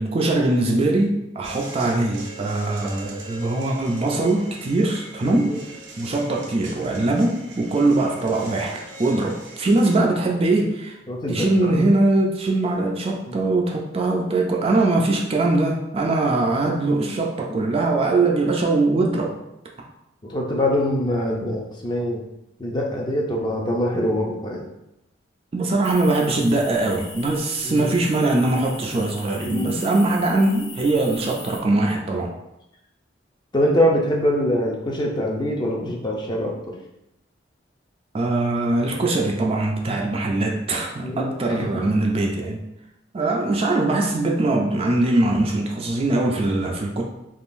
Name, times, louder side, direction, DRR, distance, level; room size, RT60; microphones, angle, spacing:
voice 1, 0.0-5.6 6.0-11.0 11.3-19.3 25.5-32.3 38.1-42.6 43.1-47.0, right 2 dB, 35° right, 0 dB, 0.4 m, -21 dB
sound 1, 1.4-10.0, right 2 dB, 80° right, 0.6 m, -41 dB
voice 2, 5.2-5.6 11.1-11.8 13.3-13.4 16.0-16.1 17.0-17.2 17.5-17.6 20.2-22.2 22.6-24.6 27.6-27.9 29.4-29.8 33.5-36.7 41.0-41.8 43.2-43.3, equal, 25° left, -1 dB, 0.5 m, -24 dB
sound 2, 25.8-31.6, left 4 dB, 65° left, 0.6 m, -40 dB
3.5 x 2.5 x 2.5 m, 0.86 s
head